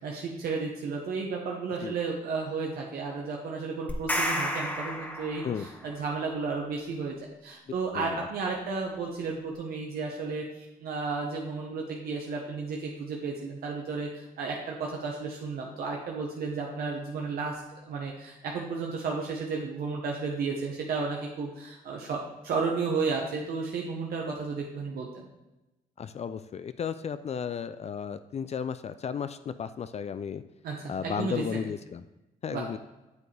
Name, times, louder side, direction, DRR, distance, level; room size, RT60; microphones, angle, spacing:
voice 1, 0.0-25.3 30.6-31.6 32.5-32.6, right 4 dB, 75° right, -1 dB, 1.1 m, -33 dB
sound 1, 3.9-5.9, equal, 10° left, 1.4 m, -31 dB
voice 2, 7.9-8.3 26.0-30.4 30.9-32.0 32.4-32.8, left 7 dB, 45° left, 12 dB, 0.4 m, -34 dB
8.2 x 6.9 x 3.3 m, 0.99 s
cardioid pair, 80°, 16 cm